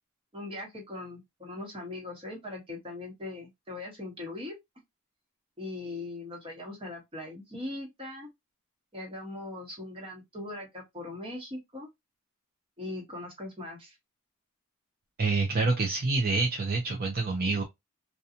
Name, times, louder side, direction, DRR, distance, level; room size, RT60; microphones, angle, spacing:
voice 1, 0.3-4.5 5.6-8.3 8.9-11.9 12.8-14.0, left 2 dB, 25° right, 1.0 m, -40 dB
voice 2, 15.2-17.6, right 3 dB, 45° right, 0.5 m, -27 dB
2.8 x 2.3 x 2.4 m
head